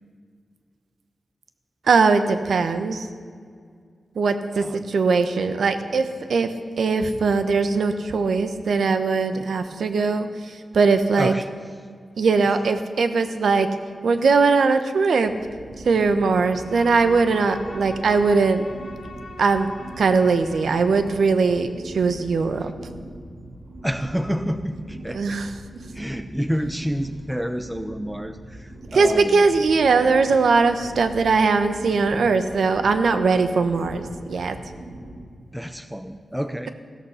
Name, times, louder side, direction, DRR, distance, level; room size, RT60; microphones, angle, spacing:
voice 1, 1.8-3.1 4.1-11.3 12.2-13.7 14.0-15.3 15.8-18.7 19.4-19.7 20.0-22.7 25.1-25.5 28.9-34.6, right 4 dB, 80° right, 9 dB, 1.1 m, -20 dB
voice 2, 11.2-11.5 23.8-25.4 25.9-29.5 35.5-36.7, equal, 5° right, 10 dB, 0.5 m, -28 dB
sound 1, 15.2-35.2, right 1 dB, 65° right, 2.7 m, -41 dB
Bowed string instrument, 16.4-21.2, left 2 dB, 65° left, 3.2 m, -42 dB
15.5 x 13.5 x 5.8 m, 2.1 s
wide cardioid pair, 155°, 0 cm